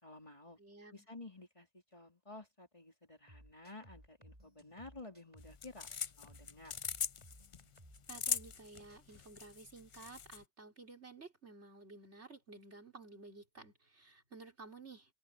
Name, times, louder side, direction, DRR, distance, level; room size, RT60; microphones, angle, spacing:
voice 1, 0.0-0.6 0.9-5.9 6.2-6.8, left 2 dB, 30° left, 4.5 m, -53 dB
voice 2, 0.6-1.1 8.1-15.1, right 3 dB, 85° right, 4.6 m, -54 dB
sound 1, 3.3-5.6 5.9-8.6 8.9-9.3, equal, 25° right, 7.6 m, -60 dB
sound 2, 5.4-10.4, left 7 dB, 45° left, 0.4 m, -41 dB
omnidirectional pair, 1.1 m